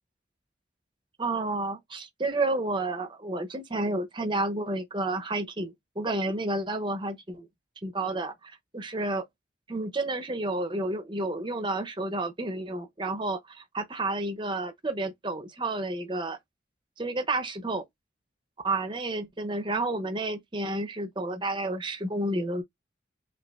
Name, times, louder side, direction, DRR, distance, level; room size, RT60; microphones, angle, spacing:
voice 1, 1.2-7.5 7.8-9.2 9.7-16.4 17.0-17.8 18.6-22.6, right 2 dB, 25° right, 0.7 m, -30 dB
5.0 x 2.5 x 2.4 m
head